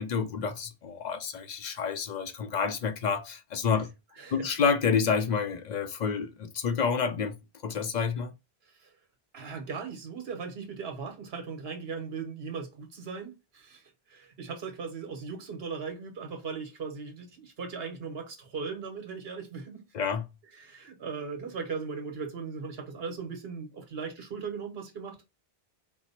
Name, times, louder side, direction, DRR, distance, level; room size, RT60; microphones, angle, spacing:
voice 1, 0.0-3.9 4.3-7.3 7.6-8.3 19.9-20.2, left 6 dB, 55° left, 0.5 m, -29 dB
voice 2, 4.2-4.5 8.6-8.9 9.3-19.8 20.5-25.2, right 5 dB, 70° right, 1.2 m, -38 dB
4.4 x 2.0 x 4.1 m
omnidirectional pair, 1.1 m